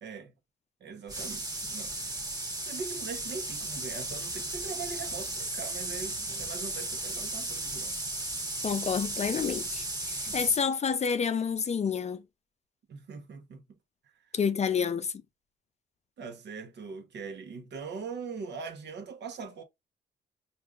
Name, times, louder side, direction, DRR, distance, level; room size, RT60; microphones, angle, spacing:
voice 1, 0.0-0.3 0.8-2.2 2.6-8.0 10.3-10.5 12.9-13.6 16.2-19.6, right 5 dB, 60° right, 1.1 m, -41 dB
sound 1, 1.1-10.6, right 2 dB, 20° right, 1.4 m, -35 dB
voice 2, 8.6-12.2 14.3-15.1, left 6 dB, 35° left, 0.5 m, -29 dB
4.8 x 2.6 x 2.4 m
cardioid pair, 90°, 20 cm